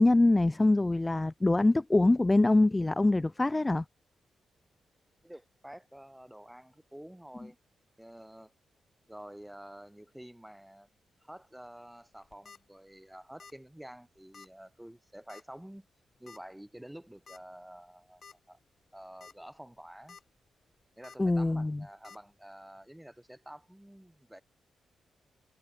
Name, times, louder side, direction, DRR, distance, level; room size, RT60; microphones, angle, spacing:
voice 1, 0.0-3.8 21.2-21.8, left 2 dB, 15° left, 0.3 m, -24 dB
voice 2, 5.2-7.6 8.0-8.5 9.1-10.9 11.2-15.9 16.2-18.6 18.9-20.2 21.0-24.4, right 1 dB, 5° right, 4.8 m, -49 dB
sound 1, 12.1-12.6 13.4-13.7 13.9-14.0 14.3-14.5 15.3-15.6 16.3-16.4 17.3-17.4 17.9-18.0 18.2-18.3 19.0-19.3 19.8-20.2 21.0-21.2 22.0-22.2, left 5 dB, 40° left, 1.2 m, -51 dB
wide cardioid pair, 160°, 0 cm